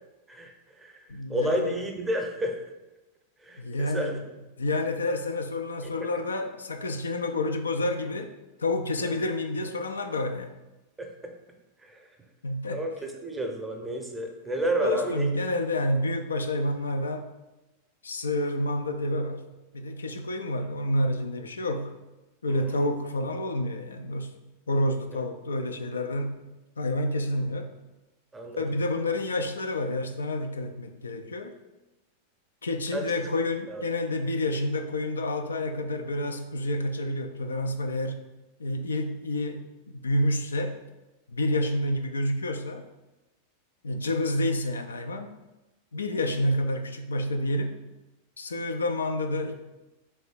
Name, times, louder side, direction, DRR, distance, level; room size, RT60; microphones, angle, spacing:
voice 1, 0.3-2.6 3.4-4.2 5.8-6.1 9.0-9.1 11.0-11.3 11.8-12.1 12.7-15.3 22.5-22.8 28.3-28.6 32.9-33.0 33.7-33.8, right 1 dB, 10° right, 3 dB, 0.7 m, -31 dB
voice 2, 1.1-1.8 3.6-4.2 4.6-8.3 8.6-10.6 12.4-12.9 14.8-17.3 18.0-19.5 19.7-22.0 22.4-24.3 24.7-26.4 26.8-27.7 28.6-31.5 32.6-38.2 38.6-40.8 41.3-42.9 43.8-45.3 45.9-47.8 48.4-49.6, left 1 dB, 75° left, 6 dB, 0.3 m, -29 dB
3.4 x 3.2 x 4.1 m, 1.0 s
figure-of-eight pair, 90°, 0 cm